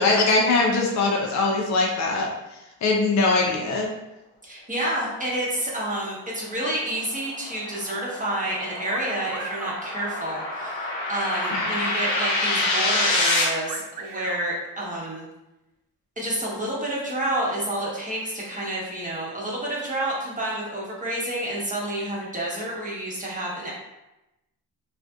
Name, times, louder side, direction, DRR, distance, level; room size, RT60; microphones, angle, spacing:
voice 1, 0.0-2.3 2.8-3.9 11.5-11.9, left 3 dB, 40° left, 0 dB, 0.5 m, -22 dB
voice 2, 4.4-15.2 16.2-23.7, right 1 dB, 20° right, -5 dB, 1.0 m, -29 dB
sound 1, 6.6-13.4, left 2 dB, 85° left, 0.7 m, -27 dB
sound 2, 8.9-9.8 11.4-12.4 13.7-14.4, right 5 dB, 50° right, 0.5 m, -36 dB
2.4 x 2.4 x 2.3 m, 0.95 s
hypercardioid pair, 45°, 44 cm